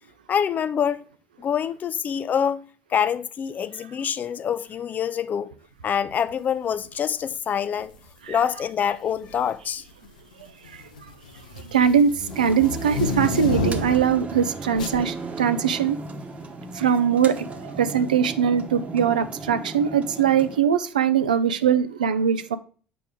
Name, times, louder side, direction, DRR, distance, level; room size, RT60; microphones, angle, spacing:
voice 1, 0.3-1.1 1.4-2.6 2.9-5.5 5.8-7.9 8.3-9.8, left 8 dB, 40° left, 0.4 m, -25 dB
sound 1, 7.8-8.1 9.1-9.5 9.9-14.2 14.8-15.0, left 4 dB, 90° left, 0.6 m, -30 dB
voice 2, 11.7-16.0 16.8-17.5 17.8-22.6, right 8 dB, 90° right, 0.4 m, -21 dB
sound 2, 12.3-20.6, right 3 dB, 30° right, 1.0 m, -36 dB
6.9 x 4.7 x 3.6 m
hypercardioid pair, 65°, 4 cm